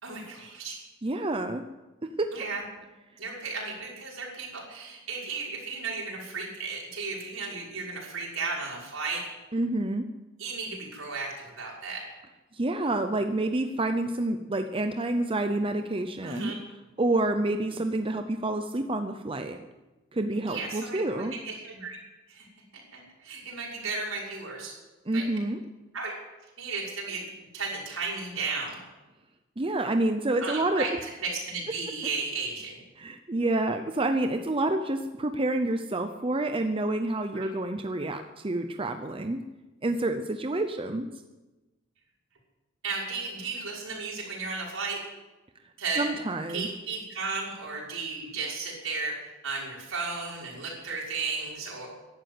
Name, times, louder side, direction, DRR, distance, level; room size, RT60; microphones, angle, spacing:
voice 1, 0.0-0.8 2.3-2.6 3.2-9.3 10.4-12.1 16.2-16.5 20.5-22.0 22.3-22.5 22.7-24.7 25.1-25.2 25.9-26.1 26.6-27.2 27.5-28.8 30.4-32.8 37.3-37.5 42.8-45.0 45.8-46.1 46.5-51.9, right 4 dB, 70° right, -3 dB, 6.0 m, -34 dB
voice 2, 1.0-1.6 2.2-2.3 9.5-10.1 12.5-16.5 17.0-19.6 20.1-21.3 25.1-25.6 29.6-30.9 33.0-39.4 39.8-41.1 46.0-46.7, right 2 dB, 25° right, 7 dB, 0.7 m, -28 dB
15.5 x 11.5 x 7.9 m, 1.1 s
head